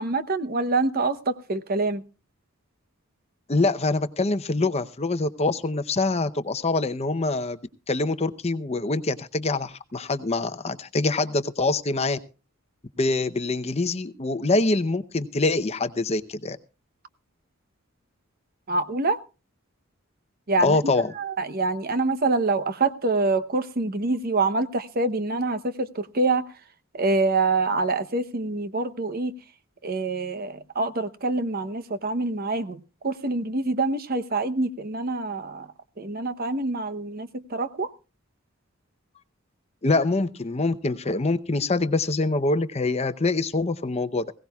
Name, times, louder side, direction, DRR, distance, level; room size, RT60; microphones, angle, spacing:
voice 1, 0.0-2.0 18.7-19.2 20.5-26.4 26.9-29.3 29.8-35.7 36.0-37.9, right 3 dB, 45° right, 11 dB, 0.9 m, -26 dB
voice 2, 3.5-7.6 7.9-12.2 13.0-16.6 20.6-21.1 39.8-44.3, left 2 dB, 30° left, 11 dB, 0.7 m, -25 dB
20.5 x 17.0 x 2.3 m, 0.33 s
head